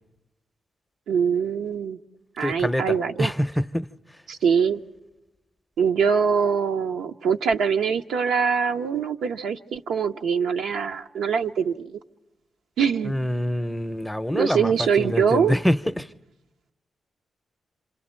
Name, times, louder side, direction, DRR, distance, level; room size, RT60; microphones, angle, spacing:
voice 1, 1.1-2.0 2.4-3.3 4.3-4.8 5.8-12.0 12.8-13.1 14.3-15.5, right 6 dB, 80° right, 0.7 m, -23 dB
voice 2, 2.4-3.9 13.0-16.1, equal, 5° left, 0.7 m, -25 dB
27.0 x 26.5 x 4.4 m
supercardioid pair, 45°, 0 cm